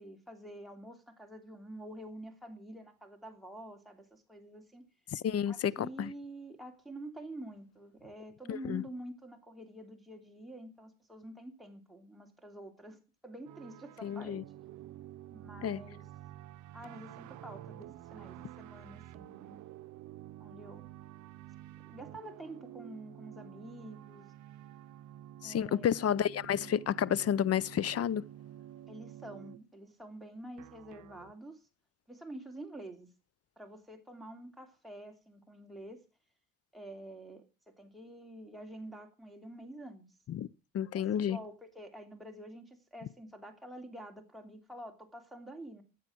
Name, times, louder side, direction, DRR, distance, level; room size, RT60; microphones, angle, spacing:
voice 1, 0.0-4.8 5.5-13.0 13.2-14.4 15.3-16.1 16.7-19.6 20.4-20.9 21.8-24.3 25.4-25.9 28.9-31.6 32.1-33.1 33.6-36.0 36.7-40.0 40.9-45.8, right 1 dB, ahead, 2.9 m, -48 dB
voice 2, 5.1-6.1 8.5-8.8 14.0-14.4 15.6-15.8 25.4-28.2 40.3-40.5 40.7-41.4, left 9 dB, 55° left, 0.6 m, -31 dB
sound 1, 13.4-29.6 30.6-31.3, right 13 dB, 75° right, 0.7 m, -50 dB
14.0 x 8.3 x 6.1 m
cardioid pair, 90°, 30 cm